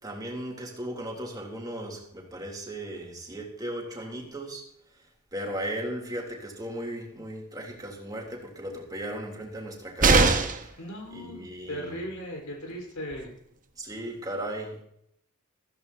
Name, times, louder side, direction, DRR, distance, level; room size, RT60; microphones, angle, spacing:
voice 1, 0.0-4.6 5.3-10.3 11.1-12.0 13.8-14.8, right 1 dB, 20° right, -1 dB, 3.5 m, -36 dB
sound 1, 10.0-10.7 12.7-12.8 13.1-13.2, right 3 dB, 35° right, 1.3 m, -20 dB
voice 2, 10.8-13.3, equal, 70° left, 0 dB, 5.2 m, -37 dB
15.5 x 15.0 x 3.0 m, 0.73 s
head